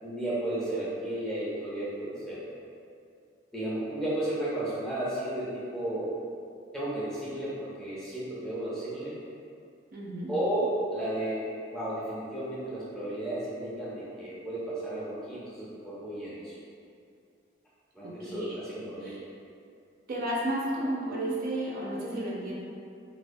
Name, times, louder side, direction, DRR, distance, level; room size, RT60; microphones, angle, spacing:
voice 1, 0.0-2.4 3.5-6.1 6.7-9.2 10.3-11.4 11.7-16.6 17.9-19.1, right 1 dB, 5° left, -10 dB, 0.5 m, -33 dB
voice 2, 9.9-10.3 18.0-18.6 20.1-22.6, right 1 dB, 50° right, -5 dB, 0.4 m, -32 dB
2.4 x 2.1 x 2.5 m, 2.4 s
head